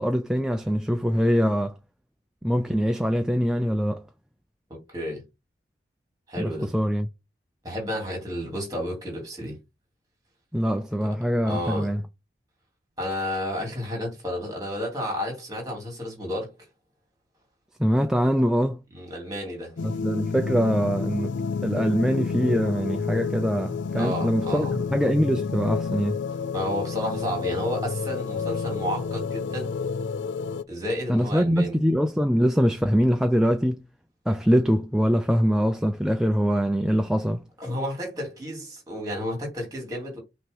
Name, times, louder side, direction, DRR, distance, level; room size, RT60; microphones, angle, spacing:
voice 1, 0.0-1.7 2.4-4.0 6.4-7.1 10.5-12.0 17.8-18.8 19.8-21.3 21.6-26.2 31.1-33.8 34.3-37.4, equal, 5° right, 0.4 m, -23 dB
voice 2, 4.7-5.2 6.3-6.7 7.6-9.6 11.4-11.9 13.0-16.5 18.9-19.7 23.9-24.7 26.5-29.8 30.7-31.8 37.6-40.2, left 1 dB, 20° right, 2.9 m, -31 dB
sound 1, 19.8-30.6, left 5 dB, 80° left, 0.4 m, -30 dB
6.0 x 3.0 x 5.3 m
head